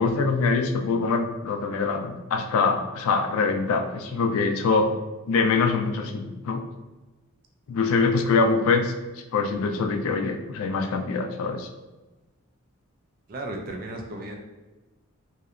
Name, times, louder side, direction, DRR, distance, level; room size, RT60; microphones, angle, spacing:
voice 1, 0.0-4.9 5.3-6.6 7.7-8.9 9.3-11.7, left 4 dB, 70° left, 5 dB, 0.3 m, -24 dB
voice 2, 13.3-14.4, right 1 dB, 40° right, 2 dB, 0.3 m, -34 dB
2.7 x 2.1 x 2.4 m, 1.1 s
head